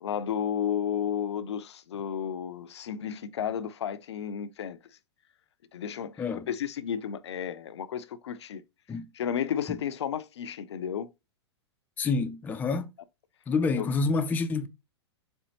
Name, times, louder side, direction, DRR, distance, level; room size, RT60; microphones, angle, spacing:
voice 1, 0.0-4.8 5.7-8.6 9.1-11.1 13.8-13.9, left 8 dB, 75° left, 0.5 m, -32 dB
voice 2, 6.2-6.5 8.9-9.1 9.7-9.8 12.0-12.9 13.5-14.7, left 4 dB, 10° left, 0.3 m, -28 dB
4.3 x 3.5 x 2.8 m
hypercardioid pair, 115°, 14 cm